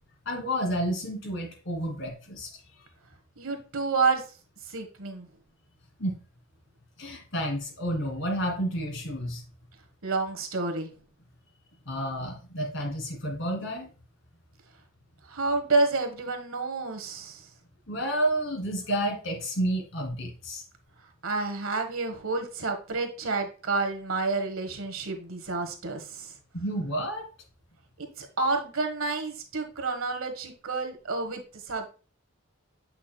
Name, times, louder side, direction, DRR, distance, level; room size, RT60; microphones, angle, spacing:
voice 1, 0.3-2.6 6.0-6.2 7.0-9.4 11.9-13.9 17.9-20.6 26.5-27.3, equal, 65° left, 1 dB, 2.4 m, -30 dB
voice 2, 3.4-4.2 4.7-5.3 10.0-10.9 15.3-17.4 21.2-26.3 28.0-31.9, right 3 dB, 85° right, 6 dB, 1.4 m, -29 dB
8.5 x 5.8 x 2.2 m, 0.35 s
head